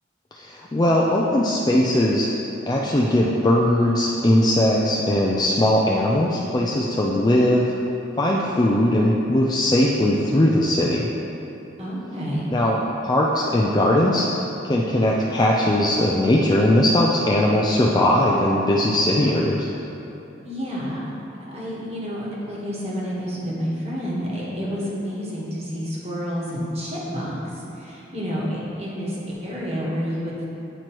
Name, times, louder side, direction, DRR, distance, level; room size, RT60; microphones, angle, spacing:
voice 1, 0.3-2.3 2.7-7.6 8.2-11.1 12.5-12.8 13.0-14.3 14.6-19.7, left 1 dB, 20° left, -3 dB, 0.3 m, -19 dB
voice 2, 11.8-12.5 20.4-21.0 21.4-30.5, equal, 35° right, -6 dB, 1.3 m, -29 dB
9.1 x 4.4 x 3.0 m, 3.0 s
head